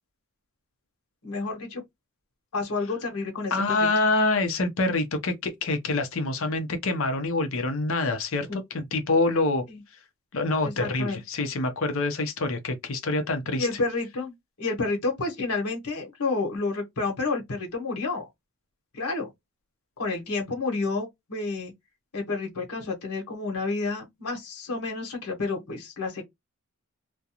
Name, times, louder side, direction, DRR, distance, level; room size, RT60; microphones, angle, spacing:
voice 1, 1.2-1.8 2.5-3.9 8.5-8.6 9.7-9.8 10.6-11.2 13.5-18.2 18.9-19.3 20.0-21.7 22.1-26.2, left 3 dB, 90° left, 1.0 m, -30 dB
voice 2, 3.5-9.6 10.3-13.7, left 2 dB, 65° left, 0.6 m, -26 dB
2.4 x 2.1 x 2.8 m
head